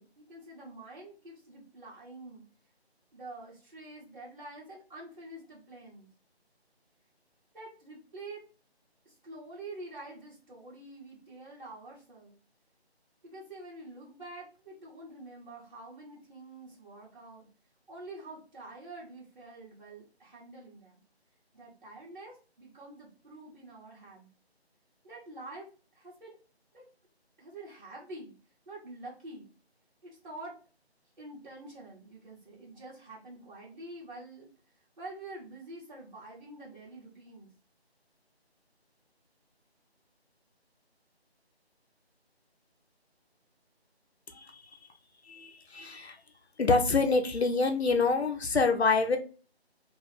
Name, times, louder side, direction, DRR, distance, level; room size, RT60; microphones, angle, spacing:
voice 1, 0.0-2.4 3.1-6.1 7.5-8.4 9.0-12.3 13.2-17.5 17.9-21.0 21.5-24.3 25.0-25.7 25.9-26.3 26.7-26.8 27.4-28.3 28.6-29.5 30.0-30.6 31.2-34.5 35.0-37.5, right 2 dB, 45° right, -7 dB, 1.6 m, -47 dB
voice 2, 44.3-44.6 45.3-46.2 46.6-49.2, left 4 dB, 75° left, 5 dB, 0.8 m, -26 dB
3.0 x 2.4 x 3.2 m, 0.37 s
figure-of-eight pair, 170°, 33 cm